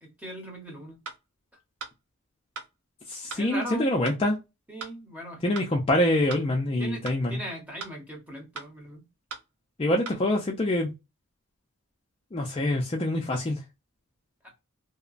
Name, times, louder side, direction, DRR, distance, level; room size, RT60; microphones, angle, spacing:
voice 1, 0.0-1.0 3.3-3.9 4.7-5.6 6.8-9.1 14.4-14.5, equal, 5° right, 0.8 m, -39 dB
sound 1, 1.1-1.2 1.8-1.9 2.6-2.7 3.3-3.4 4.0-4.2 4.8-4.9 5.5-5.7 6.3-6.4 7.0-7.2 7.8-7.9 8.5-8.7 9.3-9.5 10.1-10.2, right 4 dB, 80° right, 0.6 m, -38 dB
voice 2, 3.1-4.4 5.4-7.4 9.8-10.9 12.3-13.6, left 1 dB, 25° left, 0.3 m, -25 dB
2.9 x 2.1 x 2.4 m
head